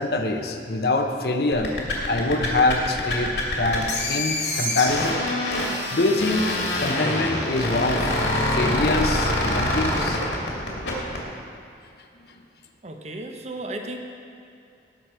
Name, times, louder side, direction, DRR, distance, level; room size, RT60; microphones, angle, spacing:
voice 1, 0.0-1.7 2.1-5.2 5.9-8.0 8.5-10.2, left 2 dB, 55° left, 5 dB, 0.8 m, -24 dB
sound 1, 1.5-11.2, left 1 dB, 75° left, 2.3 m, -25 dB
voice 2, 12.8-14.0, right 1 dB, 35° right, 4 dB, 0.9 m, -34 dB
17.5 x 6.5 x 4.5 m, 2.5 s
head